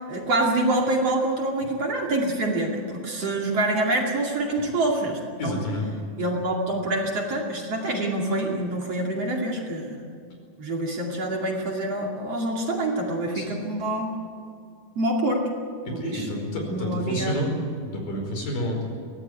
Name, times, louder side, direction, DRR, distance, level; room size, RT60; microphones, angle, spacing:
voice 1, 0.1-5.6 6.2-10.0 10.6-14.1 15.0-15.4 15.9-16.4 16.7-17.4, right 1 dB, 45° right, 0 dB, 3.1 m, -26 dB
voice 2, 5.4-5.9 13.3-13.6 15.9-17.5 17.8-18.8, left 1 dB, 65° left, 1 dB, 6.7 m, -29 dB
23.5 x 18.0 x 9.3 m, 2.3 s
omnidirectional pair, 4.3 m